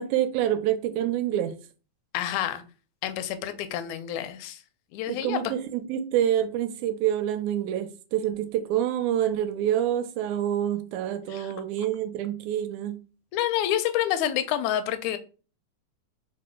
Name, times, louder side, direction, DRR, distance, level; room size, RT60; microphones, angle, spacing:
voice 1, 0.0-1.6 5.1-13.0, right 11 dB, 85° right, 1.9 m, -27 dB
voice 2, 2.1-2.6 3.0-4.6 4.9-5.4 11.3-11.5 13.3-15.2, left 11 dB, 85° left, 1.9 m, -28 dB
4.7 x 2.1 x 4.3 m
omnidirectional pair, 3.3 m